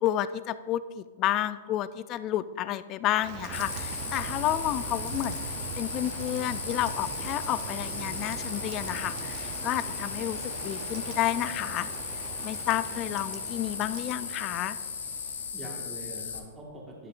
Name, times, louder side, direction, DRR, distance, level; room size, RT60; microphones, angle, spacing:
voice 1, 0.0-5.4 5.8-10.4 10.6-11.9 12.4-14.8, left 13 dB, 35° left, 15 dB, 0.3 m, -30 dB
Rain, 3.2-15.6, right 7 dB, 45° right, 0.5 m, -40 dB
sound 1, 3.5-16.4, left 6 dB, 80° left, 0.7 m, -37 dB
voice 2, 12.7-14.2 15.5-17.1, right 1 dB, 20° right, -2 dB, 1.6 m, -45 dB
10.5 x 6.3 x 2.5 m, 1.5 s
hypercardioid pair, 120°, 0 cm